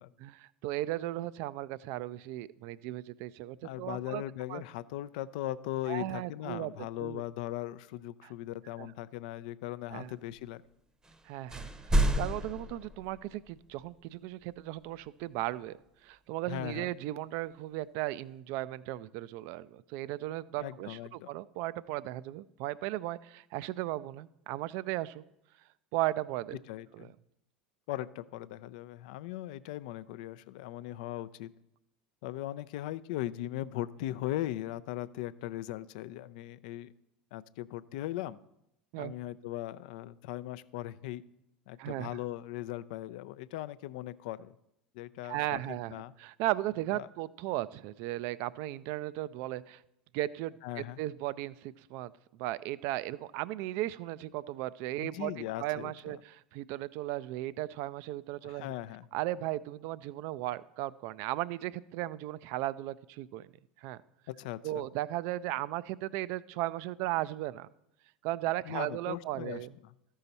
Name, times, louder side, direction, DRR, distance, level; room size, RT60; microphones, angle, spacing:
voice 1, 0.2-4.2 4.5-4.6 5.9-6.7 7.0-7.2 8.2-8.3 8.8-8.9 9.9-10.1 11.3-15.8 16.0-25.2 25.9-26.6 27.0-27.1 38.9-39.1 41.8-42.2 45.2-49.8 50.1-55.3 55.6-58.7 59.1-63.5 63.8-64.0 64.6-67.7 68.2-69.7, right 16 dB, 60° right, 18 dB, 0.3 m, -36 dB
voice 2, 3.6-10.6 16.5-16.9 20.6-21.3 26.7-27.1 27.9-31.5 32.2-36.9 37.3-38.4 39.0-41.2 41.7-44.5 44.9-46.1 46.9-47.1 50.6-51.0 55.0-56.2 58.4-59.1 64.3-64.9 68.6-69.9, left 14 dB, 65° left, 16 dB, 0.4 m, -39 dB
sound 1, 11.0-11.2 11.5-13.5, right 1 dB, 15° right, 0.8 m, -30 dB
13.0 x 5.6 x 4.1 m, 0.81 s
hypercardioid pair, 80°, 5 cm